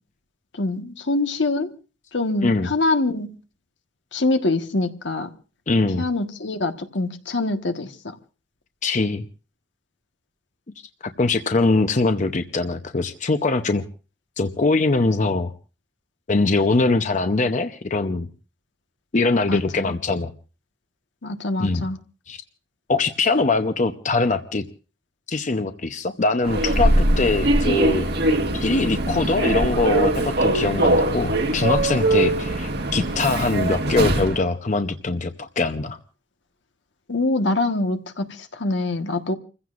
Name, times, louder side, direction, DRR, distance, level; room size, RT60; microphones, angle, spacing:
voice 1, 0.5-1.7 2.1-3.3 4.1-5.3 6.0-8.2 19.5-20.0 21.2-22.0 37.1-39.3, left 2 dB, 80° left, 6 dB, 1.4 m, -24 dB
voice 2, 5.7-6.1 8.8-9.2 11.2-13.8 14.4-15.5 16.3-18.3 19.1-20.3 21.6-21.9 22.3-22.4 22.9-24.6 25.3-28.1 28.5-36.0, left 3 dB, 40° left, 8 dB, 0.7 m, -22 dB
Human voice / Subway metro underground, 26.4-34.4, right 1 dB, 60° right, 1.6 m, -21 dB
30.0 x 15.5 x 2.5 m, 0.35 s
head